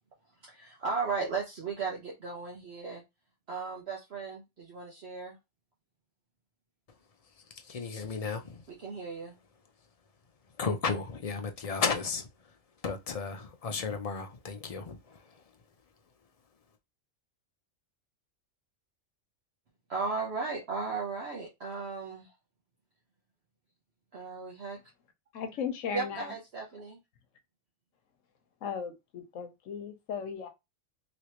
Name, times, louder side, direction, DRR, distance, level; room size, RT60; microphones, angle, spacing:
voice 1, 0.4-3.0 3.5-5.4 8.8-9.4 19.9-22.3 24.1-24.8 25.9-27.0, right 4 dB, 60° right, 1.1 m, -36 dB
voice 2, 7.5-8.6 10.6-12.5 12.8-15.4, left 5 dB, 55° left, 0.4 m, -34 dB
voice 3, 25.3-26.3 28.6-30.5, left 6 dB, 85° left, 1.2 m, -36 dB
3.2 x 3.0 x 2.9 m
omnidirectional pair, 1.3 m